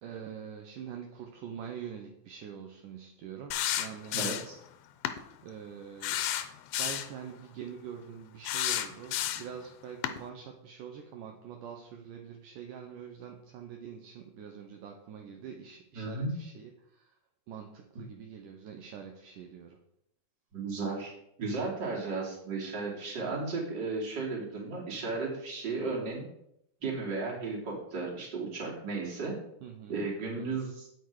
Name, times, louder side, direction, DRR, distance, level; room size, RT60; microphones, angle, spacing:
voice 1, 0.0-4.3 5.4-6.3 6.8-17.1 17.5-19.8 29.6-30.0 30.4-30.6, right 8 dB, 70° right, 3 dB, 2.2 m, -45 dB
sound 1, 3.5-4.6 5.0-5.2 6.0-7.1 8.4-9.6 10.0-10.2, left 12 dB, 80° left, 2.5 m, -31 dB
voice 2, 4.1-4.6 15.9-16.3 20.5-26.2 26.8-29.4 29.9-30.9, right 3 dB, 30° right, -3 dB, 3.1 m, -34 dB
9.1 x 8.8 x 4.8 m, 0.76 s
omnidirectional pair, 4.3 m